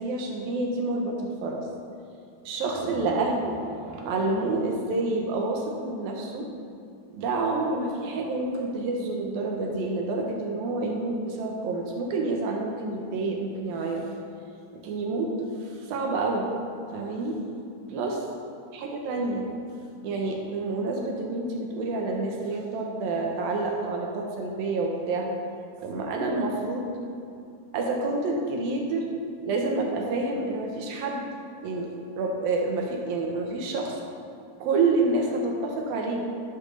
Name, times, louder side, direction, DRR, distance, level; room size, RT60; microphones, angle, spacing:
voice 1, 0.0-1.7 2.4-3.6 3.9-6.5 7.1-14.1 14.7-15.3 15.6-16.5 16.9-17.4 17.9-18.3 18.7-19.5 20.0-25.3 25.8-26.9 27.7-29.1 29.4-31.3 31.6-31.9 32.1-34.0 34.6-36.3, right 3 dB, 70° right, 0 dB, 2.5 m, -28 dB
sound 1, 2.5-6.2, right 3 dB, 85° right, 3.9 m, -42 dB
12.5 x 6.0 x 6.4 m, 2.5 s
omnidirectional pair, 4.9 m